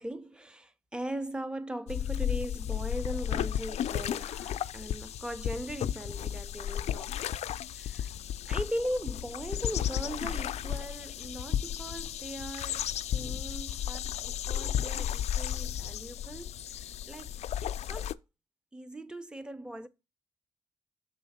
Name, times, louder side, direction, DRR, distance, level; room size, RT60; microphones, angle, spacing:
voice 1, 0.0-7.4 7.6-8.1 8.4-17.3 17.6-18.2 18.7-19.9, right 1 dB, 10° right, 0.5 m, -39 dB
sound 1, 1.9-18.1, left 10 dB, 70° left, 0.4 m, -34 dB
6.4 x 4.3 x 5.6 m
wide cardioid pair, 170°, 12 cm